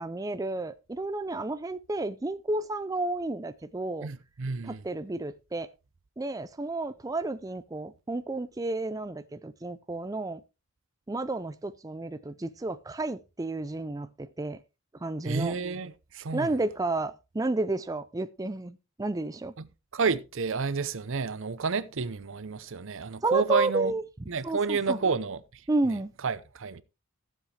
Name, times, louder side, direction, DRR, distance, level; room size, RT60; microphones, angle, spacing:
voice 1, 0.0-4.1 4.6-5.7 6.2-10.4 11.1-14.6 14.9-15.6 16.3-19.5 23.2-24.0 24.4-25.0 25.7-26.1, right 2 dB, 15° right, 0.4 m, -31 dB
voice 2, 4.0-4.8 15.2-16.5 19.6-19.7 19.9-23.9 24.3-25.6 25.9-26.8, right 4 dB, 60° right, 0.7 m, -30 dB
14.5 x 7.5 x 3.3 m
head